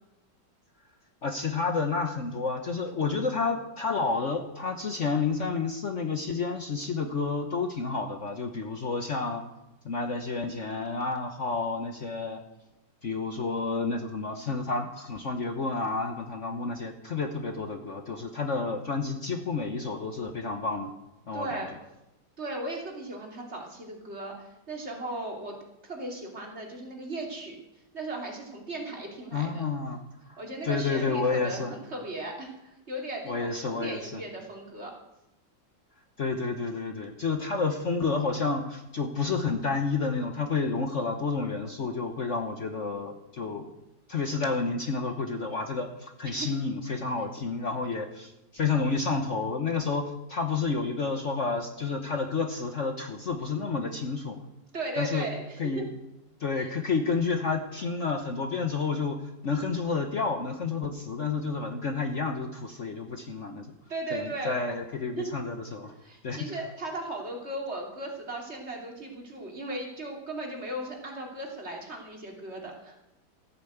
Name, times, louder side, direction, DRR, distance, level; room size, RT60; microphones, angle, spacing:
voice 1, 1.2-9.4 9.8-12.4 13.0-20.9 21.3-21.6 29.3-30.0 30.3-30.4 30.6-31.7 33.3-34.2 36.2-43.7 44.1-50.0 50.3-54.4 55.0-55.3 55.6-55.9 56.4-63.7 64.1-65.9 66.2-66.4, left 4 dB, 45° left, 5 dB, 1.2 m, -30 dB
voice 2, 21.3-21.7 22.4-25.5 25.8-27.6 27.9-29.6 30.4-34.9 46.4-46.6 54.7-55.8 56.5-56.7 63.9-64.8 65.2-65.3 66.0-73.0, right 2 dB, 35° right, 0 dB, 3.1 m, -37 dB
14.5 x 9.2 x 8.0 m, 0.90 s
omnidirectional pair, 2.0 m